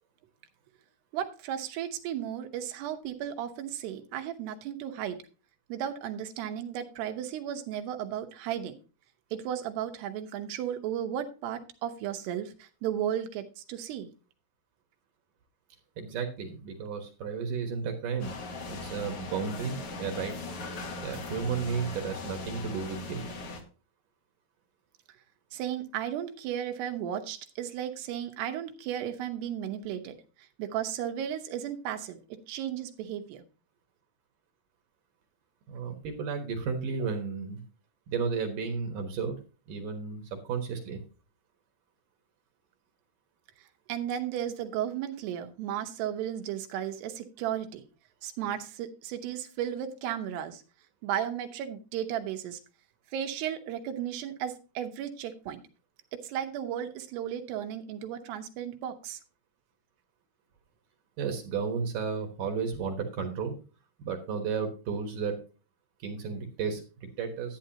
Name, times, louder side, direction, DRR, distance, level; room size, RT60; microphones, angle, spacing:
voice 1, 1.1-5.2 5.7-8.8 9.3-14.1 25.5-32.2 32.5-33.4 43.9-47.8 48.2-50.6 51.0-52.6 53.1-55.6 56.1-59.2, right 10 dB, 90° right, 6 dB, 3.1 m, -34 dB
voice 2, 16.0-18.3 18.7-20.3 21.0-23.2 35.7-37.6 38.1-39.4 39.7-41.0 61.2-63.6 64.0-65.4 66.0-67.6, right 5 dB, 65° right, 5 dB, 2.5 m, -33 dB
sound 1, 18.2-23.6, left 2 dB, 50° left, 2.0 m, -39 dB
11.5 x 9.3 x 2.8 m, 0.34 s
omnidirectional pair, 4.6 m